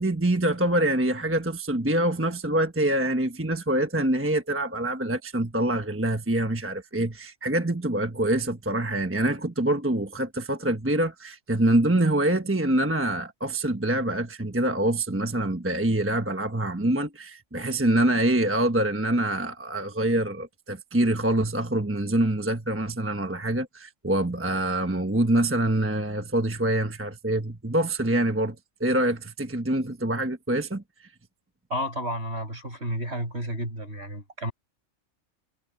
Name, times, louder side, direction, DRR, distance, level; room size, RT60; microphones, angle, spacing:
voice 1, 0.0-30.8, right 1 dB, 10° right, 1.1 m, -25 dB
voice 2, 31.7-34.5, equal, 50° right, 6.4 m, -31 dB
omnidirectional pair, 1.4 m